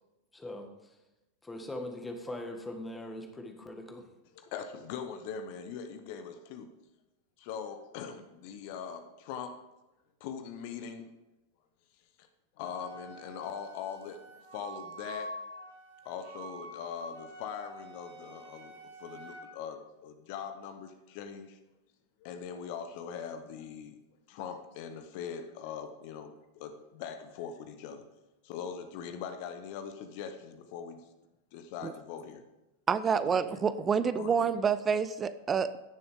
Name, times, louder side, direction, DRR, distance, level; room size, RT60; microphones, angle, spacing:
voice 1, 0.3-0.9 1.4-4.1, left 1 dB, 10° left, 5 dB, 1.6 m, -41 dB
voice 2, 4.3-6.7 7.4-9.6 10.2-11.1 12.2-12.3 12.6-15.4 16.0-21.6 22.2-23.9 24.3-28.0 28.4-31.1 31.5-32.4 33.2-33.3 34.2-34.3, left 7 dB, 45° left, 8 dB, 1.0 m, -41 dB
Wind instrument woodwind instrument, 12.6-19.4, right 1 dB, 70° right, 2.9 m, -47 dB
voice 3, 32.9-35.8, right 6 dB, 20° right, 13 dB, 0.5 m, -28 dB
16.0 x 6.9 x 3.6 m, 1.0 s
figure-of-eight pair, 90°, 0 cm